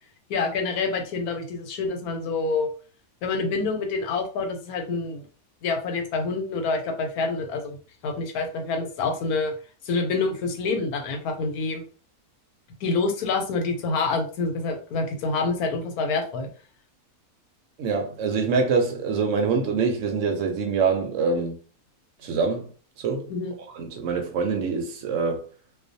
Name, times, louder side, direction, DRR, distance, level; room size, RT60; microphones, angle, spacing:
voice 1, 0.3-2.7 3.2-5.3 5.6-7.8 8.0-9.5 9.8-11.8 12.8-16.5 23.3-23.6, left 3 dB, 90° left, 1.1 m, -27 dB
voice 2, 17.8-21.6 22.2-22.7 23.0-23.3 23.7-25.4, right 5 dB, 65° right, 0.8 m, -25 dB
2.4 x 2.2 x 2.6 m
omnidirectional pair, 1.6 m